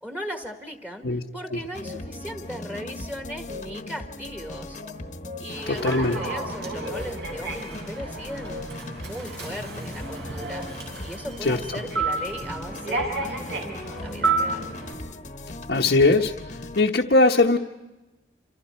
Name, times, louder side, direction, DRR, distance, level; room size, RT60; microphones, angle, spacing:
voice 1, 0.0-4.8 5.4-10.7 11.0-14.7, equal, 10° right, 4 dB, 1.7 m, -38 dB
sound 1, 1.4-2.1 3.0-3.7 4.8-5.6 6.4-7.1 8.0-8.7 10.0-10.7 13.9-14.6, left 5 dB, 50° right, 5.8 m, -41 dB
sound 2, 1.7-16.9, left 2 dB, 45° left, 1.2 m, -38 dB
Human voice / Subway metro underground, 5.5-14.9, right 3 dB, 75° right, 6.0 m, -31 dB
voice 2, 5.7-6.2 11.4-11.6 15.7-16.3 16.7-17.6, left 2 dB, 75° left, 0 dB, 1.1 m, -20 dB
27.5 x 27.0 x 4.5 m, 1.1 s
head